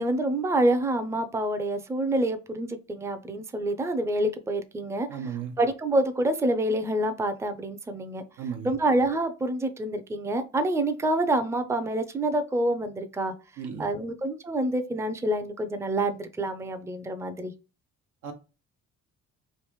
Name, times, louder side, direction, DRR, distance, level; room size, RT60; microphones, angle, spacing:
voice 1, 0.0-5.1 5.6-8.2 8.6-13.3 13.8-17.5, right 1 dB, 10° right, 0.4 m, -27 dB
voice 2, 5.1-5.6 8.4-8.7 13.6-13.9 18.2-18.3, right 7 dB, 85° right, 0.9 m, -34 dB
3.2 x 2.5 x 3.0 m
cardioid pair, 90°, 30 cm